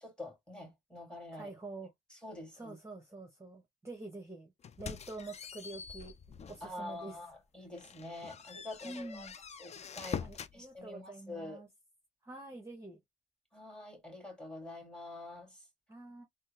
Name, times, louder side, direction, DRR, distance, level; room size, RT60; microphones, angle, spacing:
voice 1, 0.0-1.6 2.1-2.8 6.6-9.3 9.6-10.3 10.5-11.6 13.5-15.7, left 2 dB, 5° left, 1.9 m, -46 dB
voice 2, 1.4-1.9 2.6-4.5 4.8-6.1 6.5-7.2 8.8-9.3 10.2-11.7 12.2-13.0 15.9-16.2, right 2 dB, 15° right, 0.9 m, -46 dB
sound 1, 4.6-6.7 7.2-7.3 7.7-10.6, left 7 dB, 35° left, 0.4 m, -44 dB
3.6 x 2.0 x 2.8 m
cardioid pair, 90°, 20 cm